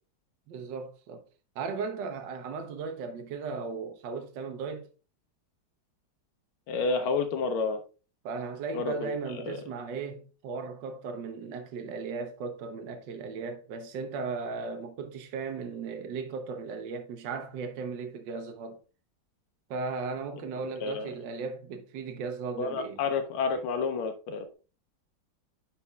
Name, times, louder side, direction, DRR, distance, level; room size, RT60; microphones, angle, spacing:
voice 1, 0.5-1.2 1.5-4.9 8.2-18.8 19.7-23.0, right 4 dB, 65° right, 1.3 m, -36 dB
voice 2, 6.7-7.8 8.7-9.6 20.8-21.1 22.6-24.5, left 4 dB, 85° left, 1.6 m, -30 dB
10.0 x 4.2 x 2.3 m
omnidirectional pair, 2.3 m